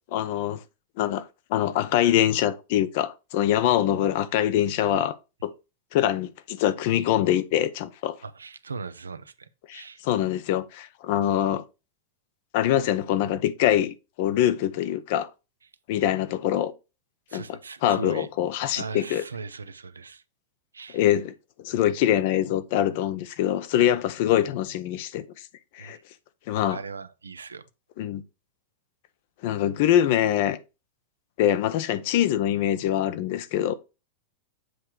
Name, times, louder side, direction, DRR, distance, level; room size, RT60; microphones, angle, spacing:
voice 1, 0.1-0.6 1.0-1.2 1.5-5.2 5.4-5.5 5.9-8.2 9.7-11.6 12.5-15.3 15.9-16.7 17.3-19.2 20.9-21.3 21.6-25.2 25.7-26.0 26.5-26.8 28.0-28.2 29.4-30.6 31.4-33.7, left 11 dB, 55° left, 0.7 m, -24 dB
voice 2, 8.2-10.0 17.3-18.3 18.8-20.2 20.7-21.0 25.8-26.0 26.7-27.6, right 4 dB, 85° right, 0.5 m, -39 dB
7.7 x 3.2 x 4.5 m
hypercardioid pair, 100°, 0 cm